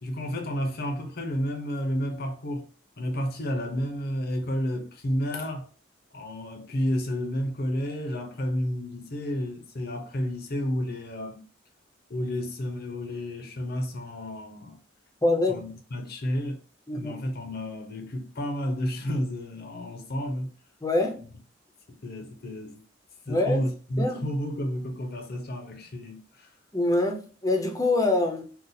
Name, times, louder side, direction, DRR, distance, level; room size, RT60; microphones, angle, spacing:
voice 1, 0.0-2.7 3.0-5.6 6.1-11.4 12.1-14.8 15.5-16.6 16.9-20.5 21.9-22.8 23.3-26.5, equal, 55° left, 0.7 m, -31 dB
voice 2, 15.2-15.6 16.9-17.1 20.8-21.2 23.3-23.6 24.0-24.2 26.7-28.4, left 2 dB, 20° left, 0.6 m, -25 dB
3.8 x 2.4 x 2.7 m
head